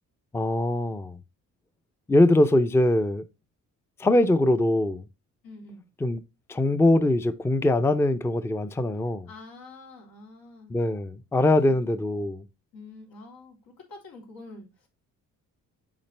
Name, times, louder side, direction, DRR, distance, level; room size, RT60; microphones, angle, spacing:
voice 1, 0.3-1.2 2.1-3.2 4.0-5.0 6.0-6.2 6.5-9.3 10.7-12.4, left 1 dB, 10° left, 0.5 m, -22 dB
voice 2, 5.4-5.8 9.3-10.7 11.6-12.0 12.7-14.9, left 2 dB, 90° left, 3.3 m, -46 dB
7.2 x 5.1 x 3.3 m
cardioid pair, 115°, 32 cm